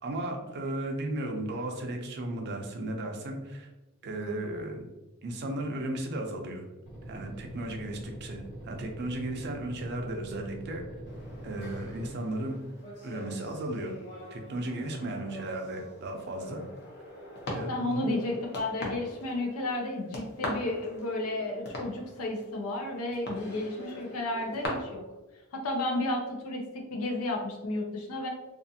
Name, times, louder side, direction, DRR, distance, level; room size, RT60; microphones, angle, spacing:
voice 1, 0.0-3.7 4.0-4.8 5.2-6.7 7.1-10.8 11.4-12.6 13.0-13.9 14.3-16.6 17.5-18.2, right 1 dB, 50° right, 3 dB, 0.4 m, -35 dB
sound 1, 6.9-12.1, right 1 dB, 35° left, 1.0 m, -43 dB
sound 2, 11.1-24.7, left 1 dB, 50° left, 0.7 m, -43 dB
voice 2, 17.6-25.0 25.5-28.3, left 2 dB, 90° left, 1 dB, 0.5 m, -32 dB
2.4 x 2.4 x 2.6 m, 1.1 s
head